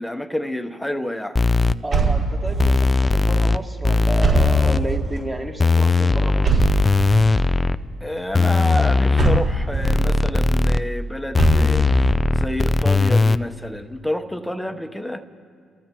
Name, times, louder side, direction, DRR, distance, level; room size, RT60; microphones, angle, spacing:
voice 1, 0.0-1.4 8.0-15.2, left 1 dB, 5° left, 6 dB, 1.0 m, -29 dB
sound 1, 1.4-1.7 2.6-3.6 3.8-4.8 5.6-7.8 8.3-9.4 9.8-10.8 11.3-13.4, left 3 dB, 25° left, 0.4 m, -18 dB
voice 2, 1.8-6.7, right 1 dB, 20° right, 2 dB, 1.7 m, -31 dB
sound 2, 1.9-2.9 4.2-5.2 6.4-7.4 9.2-10.0 11.4-12.2, right 4 dB, 50° right, 5.2 m, -22 dB
29.5 x 14.5 x 3.0 m, 2.2 s
cardioid pair, 90°, 0 cm